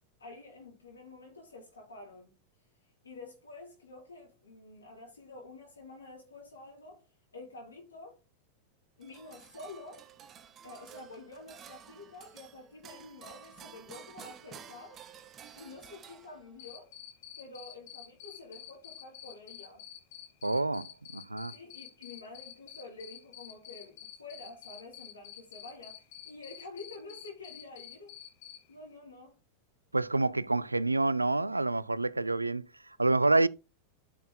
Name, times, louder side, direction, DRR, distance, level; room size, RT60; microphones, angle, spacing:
voice 1, 0.2-2.3 3.0-7.1 7.3-8.2 9.0-10.1 10.6-15.0 15.5-16.9 17.4-19.8 21.5-28.2 28.7-29.3, left 3 dB, 75° left, 4.3 m, -49 dB
sound 1, 9.0-16.7, right 8 dB, 30° right, 0.9 m, -52 dB
Cricket, 16.6-28.6, left 12 dB, 50° left, 2.1 m, -47 dB
voice 2, 20.4-21.5 29.9-33.5, right 2 dB, 85° right, 0.3 m, -28 dB
13.0 x 6.1 x 2.2 m
figure-of-eight pair, 90°, 0 cm